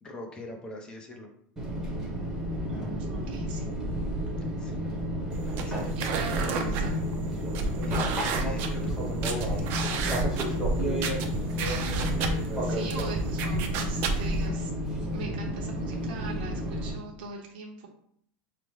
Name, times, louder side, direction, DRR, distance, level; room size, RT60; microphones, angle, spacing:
voice 1, 0.0-1.3 4.6-4.9 5.6-7.0 7.4-7.5 7.8-10.5, left 2 dB, 15° left, 1 dB, 0.6 m, -44 dB
Fixed-wing aircraft airplane, 1.6-16.9, equal, 5° right, 1.0 m, -31 dB
voice 2, 2.8-3.7 6.0-6.9 12.6-14.7 15.1-17.9, right 4 dB, 75° right, 0 dB, 0.7 m, -40 dB
sound 1, 5.3-14.5, right 3 dB, 40° right, 0.5 m, -32 dB
4.9 x 2.1 x 3.1 m, 0.65 s
supercardioid pair, 160°, 6 cm